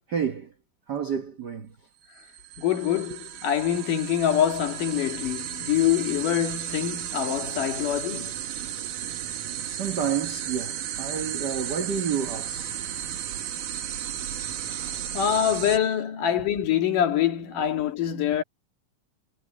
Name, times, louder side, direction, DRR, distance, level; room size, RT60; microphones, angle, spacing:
voice 1, 0.1-0.5 0.9-1.7 9.2-13.5 14.0-15.2 16.4-16.5, right 7 dB, 70° right, 0.9 m, -32 dB
sound 1, 2.2-15.8, right 10 dB, 85° right, 3.3 m, -34 dB
voice 2, 2.6-8.4 15.1-18.4, left 10 dB, 80° left, 3.6 m, -25 dB
omnidirectional pair, 3.7 m